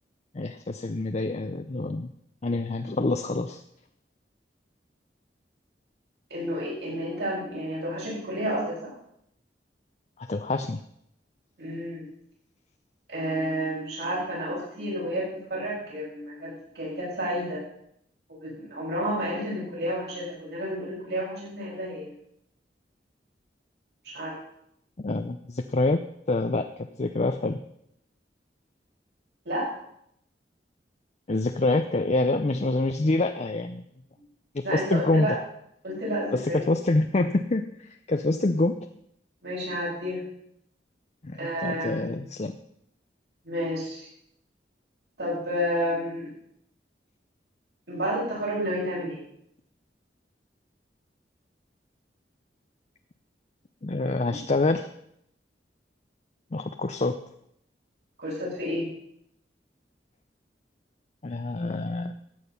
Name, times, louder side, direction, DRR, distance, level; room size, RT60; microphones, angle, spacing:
voice 1, 0.3-2.1 2.4-3.6 10.2-10.8 25.0-27.6 31.3-33.8 34.5-35.4 36.3-38.8 41.2-42.5 53.8-54.9 56.5-57.2 61.2-62.1, left 2 dB, 40° left, 7 dB, 0.6 m, -26 dB
voice 2, 6.3-8.9 11.6-12.1 13.1-17.6 18.4-22.1 24.0-24.3 29.5-29.7 34.6-35.3 35.8-36.6 39.4-40.2 41.4-42.1 43.4-44.1 45.2-46.3 47.9-49.2 54.3-54.4 58.2-58.9, equal, 70° right, -6 dB, 7.2 m, -30 dB
15.0 x 9.1 x 5.7 m, 0.74 s
head